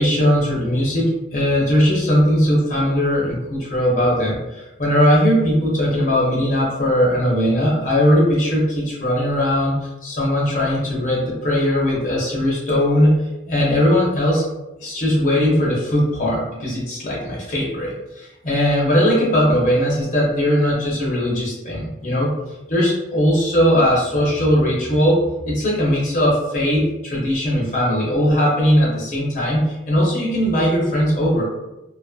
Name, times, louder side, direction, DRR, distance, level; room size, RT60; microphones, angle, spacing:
voice 1, 0.0-13.2 13.5-14.4 14.8-22.3 22.7-31.4, equal, 40° left, -4 dB, 0.6 m, -19 dB
2.5 x 2.5 x 2.3 m, 1.0 s
head